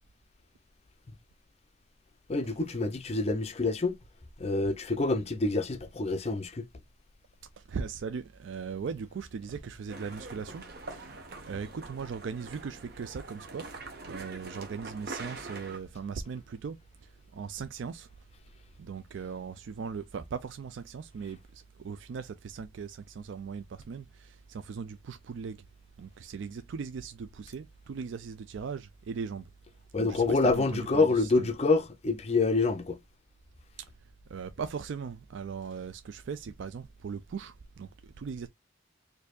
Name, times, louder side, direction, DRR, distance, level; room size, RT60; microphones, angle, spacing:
voice 1, 2.3-4.0 4.4-6.6 29.9-33.0, left 3 dB, 30° left, 0.5 m, -27 dB
voice 2, 7.6-11.1 11.4-13.7 14.0-16.8 17.3-18.1 18.8-25.6 26.0-29.5 30.0-31.5 34.3-38.5, right 6 dB, 70° right, 0.4 m, -39 dB
sound 1, 9.9-15.8, right 3 dB, 50° right, 0.9 m, -44 dB
4.4 x 2.6 x 2.3 m
head